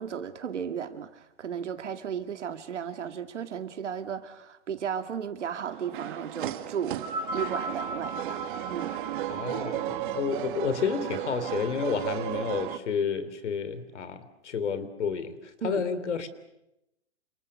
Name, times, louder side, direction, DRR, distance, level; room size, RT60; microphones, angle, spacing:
voice 1, 0.0-7.0 7.3-9.0 15.6-15.8, right 8 dB, 85° right, 7 dB, 2.4 m, -34 dB
sound 1, 5.4-12.8, right 12 dB, 45° right, 1.9 m, -34 dB
sound 2, 6.9-11.4 12.3-12.4, equal, 20° right, 5.6 m, -38 dB
voice 2, 9.3-16.3, left 6 dB, 80° left, 13 dB, 3.3 m, -31 dB
28.5 x 27.0 x 6.5 m, 0.88 s
hypercardioid pair, 155°, 35 cm